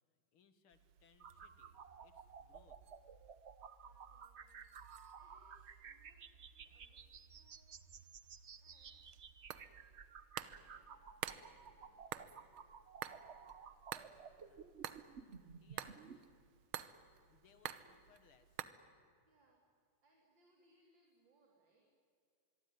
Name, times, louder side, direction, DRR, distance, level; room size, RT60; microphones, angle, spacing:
voice 1, 0.1-2.8 14.4-14.7 15.6-16.3 17.3-18.6, left 7 dB, 80° left, 11 dB, 2.5 m, -70 dB
sound 1, 0.7-18.6, right 10 dB, 80° right, 1.8 m, -52 dB
sound 2, 1.2-16.2, right 6 dB, 40° right, 1.0 m, -55 dB
voice 2, 3.8-7.7 8.6-9.0 10.6-12.4 17.7-18.1 19.3-21.9, right 1 dB, 60° right, 0 dB, 4.1 m, -75 dB
26.0 x 22.5 x 9.6 m, 2.2 s
omnidirectional pair, 2.3 m